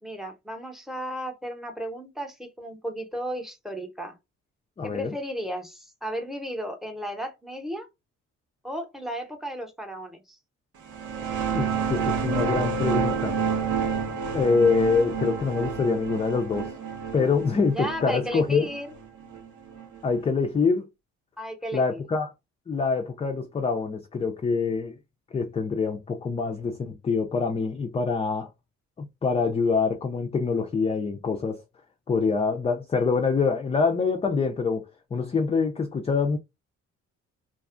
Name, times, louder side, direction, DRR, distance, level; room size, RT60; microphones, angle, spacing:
voice 1, 0.0-4.2 4.8-7.9 8.6-10.4 17.1-17.3 17.7-18.9 21.4-22.0, equal, ahead, 0.8 m, -34 dB
voice 2, 4.8-5.1 11.5-13.4 14.3-16.7 17.1-18.7 20.0-20.9 21.7-22.3 22.7-25.0 25.3-28.5 29.0-31.6 32.1-36.4, left 5 dB, 20° left, 0.4 m, -25 dB
sound 1, 10.9-20.2, right 6 dB, 80° right, 0.9 m, -29 dB
2.5 x 2.3 x 2.4 m
cardioid pair, 90°, 30 cm